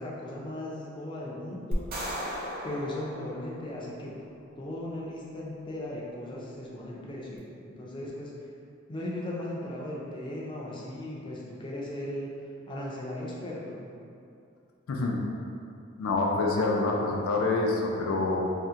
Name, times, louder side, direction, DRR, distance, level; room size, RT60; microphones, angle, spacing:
voice 1, 0.0-1.9 2.6-4.2 4.6-8.5 8.9-14.0, left 1 dB, 25° left, -4 dB, 0.4 m, -37 dB
sound 1, 1.7-4.1, equal, 45° right, 0.5 m, -35 dB
voice 2, 14.9-15.2 16.0-18.4, left 3 dB, 80° left, -1 dB, 0.4 m, -26 dB
2.7 x 2.1 x 3.5 m, 2.5 s
head